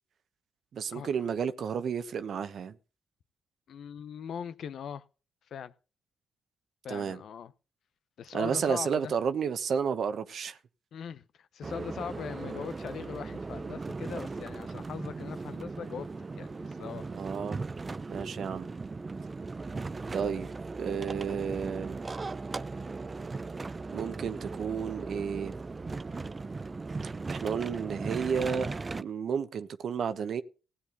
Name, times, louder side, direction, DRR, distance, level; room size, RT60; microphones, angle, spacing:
voice 1, 0.7-2.7 6.9-7.2 8.3-10.6 17.1-17.6 18.1-18.7 20.1-20.5 20.8-22.0 23.9-25.5 27.0-30.4, right 7 dB, 70° right, 1.0 m, -32 dB
voice 2, 3.7-5.0 5.5-5.7 6.8-7.5 8.2-9.1 10.9-16.1 16.4-17.1, left 7 dB, 75° left, 0.8 m, -40 dB
sound 1, 11.6-29.0, right 3 dB, 35° right, 0.7 m, -38 dB
16.0 x 8.4 x 4.0 m
supercardioid pair, 50°, 0 cm